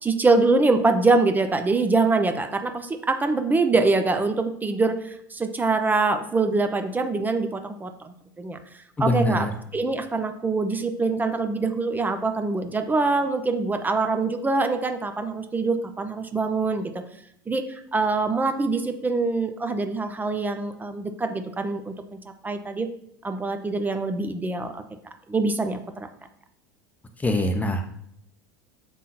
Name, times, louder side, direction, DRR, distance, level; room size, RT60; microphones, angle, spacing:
voice 1, 0.0-8.6 9.0-9.5 9.7-17.0 17.5-21.9 22.4-22.9 23.2-24.8 25.3-26.1, right 3 dB, 15° right, 7 dB, 0.7 m, -24 dB
voice 2, 9.0-9.5 27.2-27.8, left 1 dB, 15° left, 7 dB, 0.8 m, -23 dB
7.3 x 3.7 x 4.2 m, 0.71 s
hypercardioid pair, 90°, 11 cm